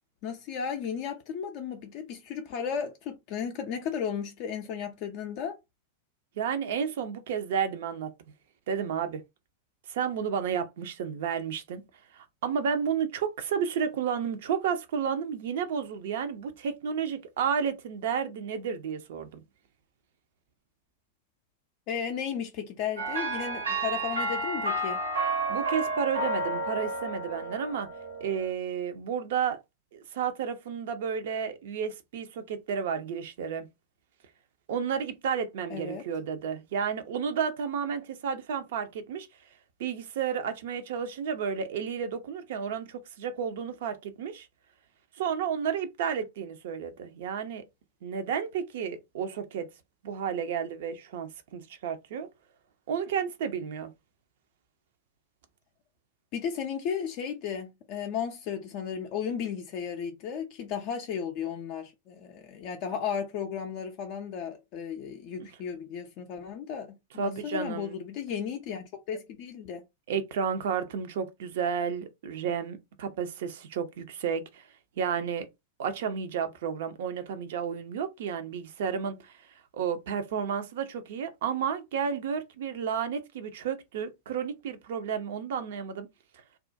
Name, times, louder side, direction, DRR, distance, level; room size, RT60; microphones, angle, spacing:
voice 1, 0.2-5.6 21.9-25.0 35.7-36.0 56.3-69.9, left 7 dB, 45° left, 0.4 m, -34 dB
voice 2, 6.4-8.3 8.7-9.2 9.9-11.8 12.1-19.4 25.5-27.9 28.2-29.6 29.9-33.7 34.7-39.3 39.8-44.5 45.2-47.6 48.0-49.7 50.0-52.3 52.9-53.9 65.4-65.5 67.2-68.0 70.1-74.7 75.0-75.5 75.8-79.4 79.7-86.1, right 7 dB, 55° right, 0.5 m, -32 dB
sound 1, 23.0-28.5, right 2 dB, 75° right, 1.0 m, -31 dB
2.3 x 2.1 x 2.5 m
figure-of-eight pair, 95°, 0 cm